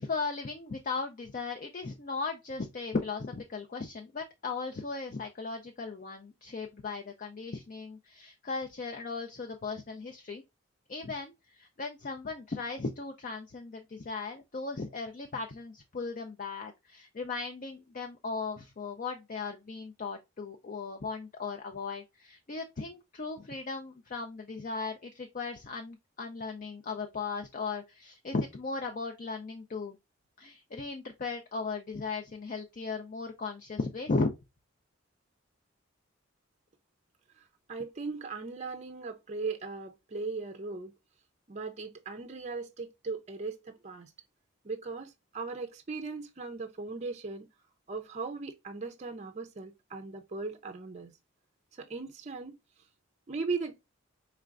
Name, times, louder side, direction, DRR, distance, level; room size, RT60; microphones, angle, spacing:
voice 1, 0.0-10.4 10.9-30.0 30.4-34.3, left 4 dB, 40° left, 0.5 m, -37 dB
voice 2, 37.4-40.9 41.5-44.1 44.6-47.5 47.9-51.1 51.7-52.5 53.3-53.8, right 4 dB, 35° right, 0.5 m, -38 dB
4.9 x 3.3 x 2.4 m
head